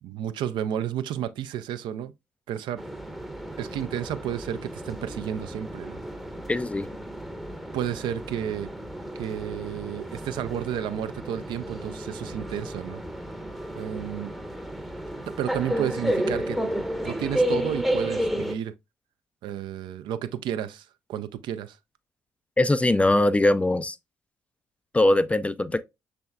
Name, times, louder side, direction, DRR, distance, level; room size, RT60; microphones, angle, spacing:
voice 1, 0.0-2.1 2.5-2.8 3.6-6.0 7.7-8.7 9.2-13.0 13.8-14.3 15.3-16.6 17.0-18.7 19.4-21.8, right 10 dB, 60° right, 0.4 m, -31 dB
sound 1, 2.8-18.5, right 1 dB, ahead, 0.7 m, -32 dB
voice 2, 6.5-6.9 22.6-24.0 24.9-25.8, left 1 dB, 15° left, 0.3 m, -21 dB
6.0 x 3.4 x 2.3 m
figure-of-eight pair, 40°, 9 cm